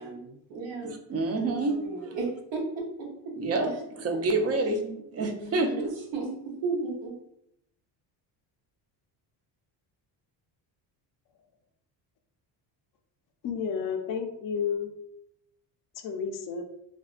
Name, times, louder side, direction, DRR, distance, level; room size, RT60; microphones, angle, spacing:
voice 1, 0.0-0.9 1.3-3.3 3.6-3.7 5.1-5.8 6.1-6.3 6.6-7.1, right 3 dB, 70° right, -1 dB, 0.9 m, -35 dB
voice 2, 0.8-1.8 3.4-3.7 4.0-5.9, right 2 dB, 35° right, 3 dB, 0.4 m, -28 dB
voice 3, 13.4-14.9 16.0-16.6, left 6 dB, 45° left, 6 dB, 0.4 m, -31 dB
2.6 x 2.1 x 2.4 m, 0.75 s
cardioid pair, 100°, 48 cm